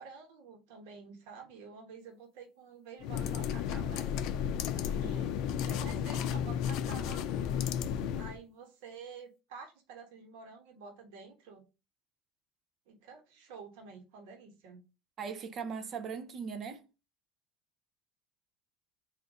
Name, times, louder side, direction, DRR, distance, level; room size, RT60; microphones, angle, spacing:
voice 1, 0.0-4.1 4.7-7.3 8.1-11.7 12.9-14.8, right 5 dB, 85° right, 1.1 m, -50 dB
sound 1, 3.0-8.4, left 8 dB, 60° left, 0.4 m, -33 dB
voice 2, 4.9-5.3 15.2-16.9, right 6 dB, 35° right, 0.6 m, -40 dB
3.9 x 2.5 x 4.7 m
cardioid pair, 145°, 0 cm